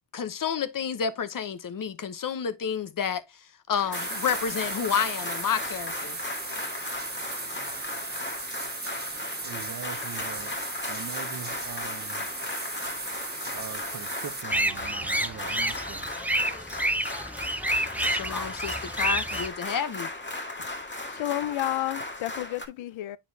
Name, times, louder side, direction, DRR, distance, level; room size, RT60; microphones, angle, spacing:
voice 1, 0.1-6.2 18.1-20.1, left 7 dB, 45° left, 0.8 m, -30 dB
sound 1, 3.8-22.7, left 2 dB, 25° left, 1.8 m, -36 dB
sound 2, 3.9-14.4, right 3 dB, 20° right, 1.5 m, -37 dB
voice 2, 9.4-10.5 10.9-12.2 13.5-16.0, right 7 dB, 40° right, 0.7 m, -41 dB
sound 3, 14.5-19.5, right 1 dB, 5° right, 0.5 m, -29 dB
voice 3, 20.6-23.2, left 14 dB, 80° left, 0.6 m, -32 dB
9.1 x 4.3 x 2.7 m
cardioid pair, 100°, 46 cm